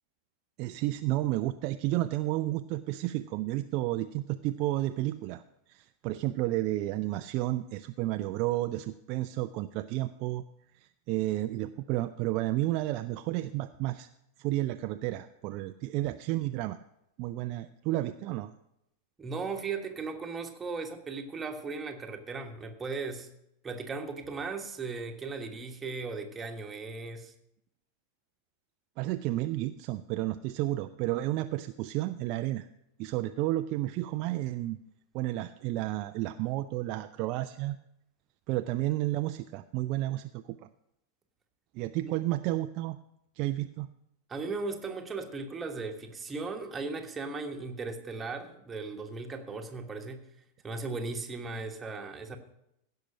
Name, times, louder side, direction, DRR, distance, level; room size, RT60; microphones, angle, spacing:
voice 1, 0.6-5.4 5.7-10.4 10.7-14.1 14.4-16.8 17.2-18.5 29.0-32.7 33.0-34.8 35.1-37.8 38.5-40.7 41.7-43.0 43.4-43.9, right 16 dB, 40° right, 9 dB, 0.4 m, -31 dB
voice 2, 19.2-23.3 23.6-27.3 42.0-42.1 44.3-50.2 50.6-52.4, right 4 dB, 15° right, 4 dB, 1.4 m, -37 dB
16.0 x 5.8 x 6.3 m, 0.81 s
figure-of-eight pair, 90°, 0 cm